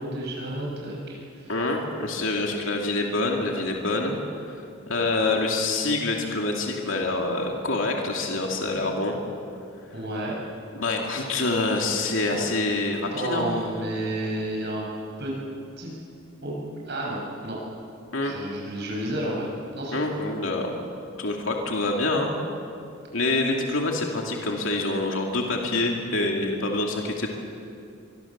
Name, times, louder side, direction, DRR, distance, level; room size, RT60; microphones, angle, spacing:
voice 1, 0.0-1.5 5.1-5.3 9.9-10.3 13.1-14.8 15.2-15.3 15.8-15.9 16.4-17.6 18.2-20.0, right 1 dB, 55° right, -4 dB, 6.6 m, -31 dB
voice 2, 1.5-4.1 4.6-9.2 10.8-13.5 18.1-18.3 19.9-20.7 21.2-22.3 23.1-27.3, left 2 dB, 70° left, 1 dB, 2.6 m, -26 dB
24.5 x 22.5 x 7.4 m, 2.6 s
head